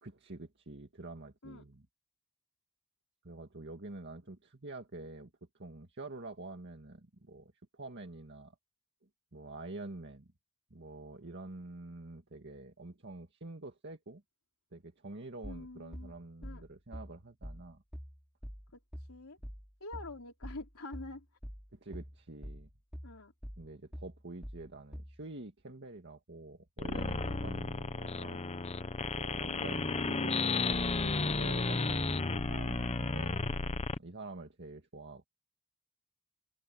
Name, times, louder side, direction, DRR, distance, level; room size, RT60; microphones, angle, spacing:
voice 1, 0.0-1.9 3.2-5.3 5.6-8.6 9.3-10.3 10.7-14.2 14.7-17.8 21.7-22.7 23.6-28.5 29.0-33.4 34.0-35.2, right 2 dB, 55° right, 1.9 m, -47 dB
voice 2, 15.4-16.1 16.4-16.6 18.7-18.8 19.1-19.4 19.8-21.2 23.0-23.3 29.4-29.7, left 2 dB, 90° left, 3.4 m, -46 dB
sound 1, 15.4-25.2, equal, 5° right, 3.7 m, -46 dB
sound 2, 26.8-34.0, left 3 dB, 30° left, 0.9 m, -33 dB
head